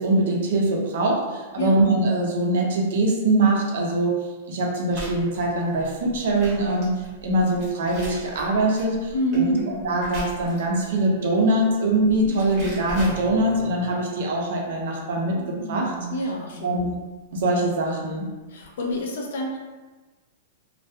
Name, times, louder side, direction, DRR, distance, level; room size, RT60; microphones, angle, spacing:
voice 1, 0.0-4.1 4.5-6.9 7.2-15.9 16.6-16.9 17.3-18.3, right 2 dB, 65° right, -1 dB, 0.6 m, -23 dB
sound 1, 4.9-10.9 11.9-13.7, right 1 dB, 25° right, 0.9 m, -39 dB
voice 2, 9.1-9.6 16.1-16.8 18.5-19.6, left 1 dB, 70° left, 0 dB, 0.5 m, -28 dB
sound 2, 9.4-11.5 12.0-14.1 15.3-16.7 17.4-17.5 18.6-18.7, right 3 dB, 15° left, 0.5 m, -38 dB
2.3 x 2.2 x 2.7 m, 1.2 s
supercardioid pair, 170°, 0 cm